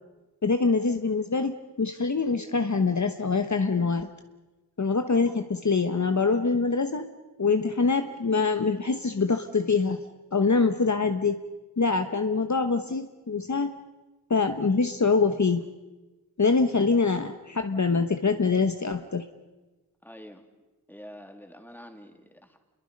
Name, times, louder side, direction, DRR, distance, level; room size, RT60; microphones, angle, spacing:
voice 1, 0.4-1.5 1.8-4.1 4.8-7.0 7.4-10.0 10.3-11.4 11.8-13.8 14.3-15.6 16.4-19.2, left 4 dB, 45° left, 7 dB, 1.1 m, -24 dB
voice 2, 20.0-20.4 20.9-22.6, equal, 5° left, 4 dB, 2.8 m, -46 dB
28.0 x 22.0 x 5.3 m, 1.1 s
wide cardioid pair, 60°, 39 cm